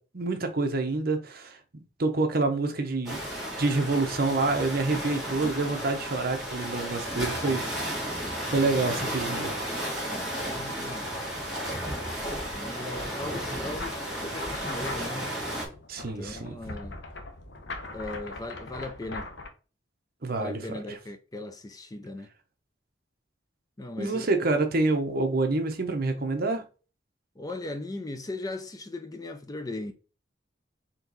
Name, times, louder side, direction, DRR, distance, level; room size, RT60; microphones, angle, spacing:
voice 1, 0.1-3.2 3.6-7.6 8.2-9.6 15.9-16.6 20.2-20.8 24.0-26.6, right 3 dB, 55° right, 0.9 m, -27 dB
sound 1, 3.0-15.7, equal, 5° right, 2.0 m, -33 dB
voice 2, 10.0-11.3 12.5-15.3 16.2-17.0 17.9-19.3 20.4-22.3 23.8-24.3 27.4-29.9, left 2 dB, 20° left, 0.4 m, -38 dB
sound 2, 13.7-19.5, left 2 dB, 70° left, 0.9 m, -41 dB
4.4 x 3.0 x 3.9 m
head